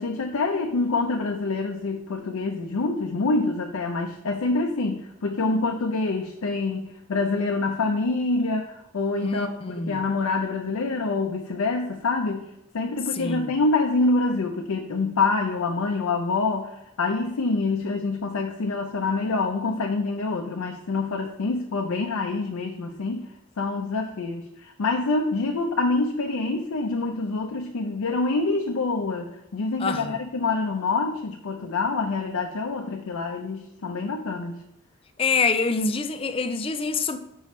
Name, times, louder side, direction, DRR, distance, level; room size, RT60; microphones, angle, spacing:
voice 1, 0.0-12.5 12.7-23.3 23.6-34.6, left 3 dB, 90° left, 0.5 m, -26 dB
voice 2, 9.2-10.0 13.1-13.5 29.8-30.2 35.2-37.2, left 4 dB, 25° left, 0.4 m, -26 dB
6.5 x 5.5 x 3.1 m
head